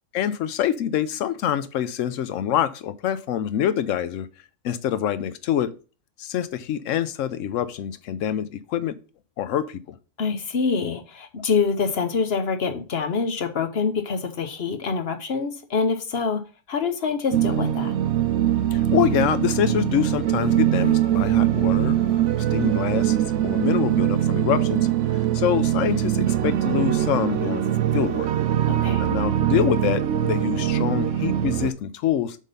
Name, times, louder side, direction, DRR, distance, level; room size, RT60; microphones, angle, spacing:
voice 1, 0.1-4.3 4.6-5.7 6.2-9.0 9.4-10.0 18.7-22.2 22.5-27.6 27.9-28.3 29.0-32.4, left 10 dB, 75° left, 1.0 m, -25 dB
voice 2, 10.2-16.4 16.7-17.9 28.7-29.1, left 5 dB, 55° left, 1.0 m, -25 dB
sound 1, 17.3-31.7, right 11 dB, 70° right, 1.0 m, -22 dB
7.3 x 3.8 x 5.4 m
omnidirectional pair, 1.4 m